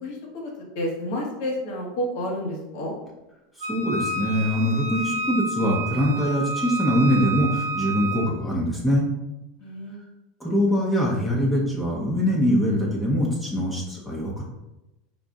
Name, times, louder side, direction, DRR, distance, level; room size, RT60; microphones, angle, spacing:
voice 1, 0.0-3.0 9.6-10.0, equal, 65° left, -1 dB, 1.2 m, -30 dB
voice 2, 3.6-9.1 10.4-14.4, equal, 10° left, -4 dB, 0.9 m, -23 dB
Wind instrument woodwind instrument, 3.6-8.3, right 2 dB, 85° right, 0.5 m, -30 dB
4.1 x 2.4 x 3.6 m, 0.96 s
supercardioid pair, 110°, 0 cm